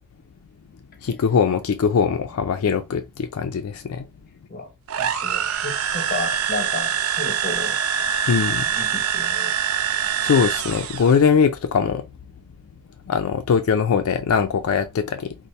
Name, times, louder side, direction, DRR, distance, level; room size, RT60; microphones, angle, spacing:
voice 1, 1.0-4.1 8.3-8.7 10.2-12.1 13.1-15.4, left 6 dB, 75° left, 0.4 m, -21 dB
sound 1, 4.9-11.2, right 8 dB, 80° right, 0.4 m, -24 dB
voice 2, 5.0-7.8 8.7-9.5, left 2 dB, 45° left, 0.8 m, -32 dB
4.1 x 2.0 x 3.1 m
head